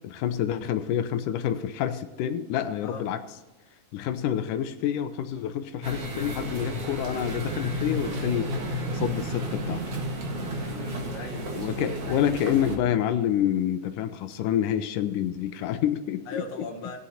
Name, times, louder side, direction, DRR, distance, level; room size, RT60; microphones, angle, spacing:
voice 1, 0.0-3.2 3.9-8.5 8.9-9.8 11.6-16.4, left 10 dB, 80° left, 10 dB, 2.3 m, -28 dB
sound 1, 5.8-12.8, right 1 dB, 50° right, 2.4 m, -32 dB
voice 2, 10.4-11.6 16.3-17.0, left 3 dB, 55° left, 0 dB, 2.7 m, -38 dB
19.0 x 6.9 x 4.3 m, 1.2 s
omnidirectional pair, 3.8 m